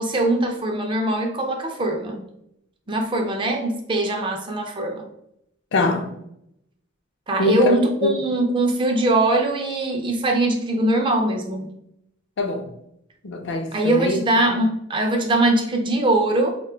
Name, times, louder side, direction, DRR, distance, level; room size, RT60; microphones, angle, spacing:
voice 1, 0.0-2.2 2.9-5.1 7.3-11.7 13.7-16.5, right 2 dB, 25° right, 3 dB, 0.4 m, -21 dB
voice 2, 5.7-6.2 7.4-7.8 8.0-8.1 12.4-12.7 13.2-14.2 14.5-14.6, left 2 dB, 60° left, 4 dB, 0.5 m, -23 dB
2.5 x 2.2 x 3.7 m, 0.77 s
head